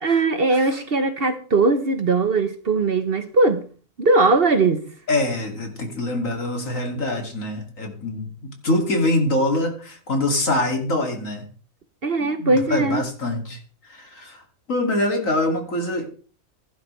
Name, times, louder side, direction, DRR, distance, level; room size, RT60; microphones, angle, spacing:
voice 1, 0.0-3.6 4.0-4.9 12.0-13.0, right 3 dB, 45° right, 1.2 m, -20 dB
voice 2, 5.1-11.4 12.2-14.4 14.7-16.1, left 1 dB, 65° left, 3.0 m, -24 dB
16.0 x 11.5 x 3.3 m
omnidirectional pair, 1.4 m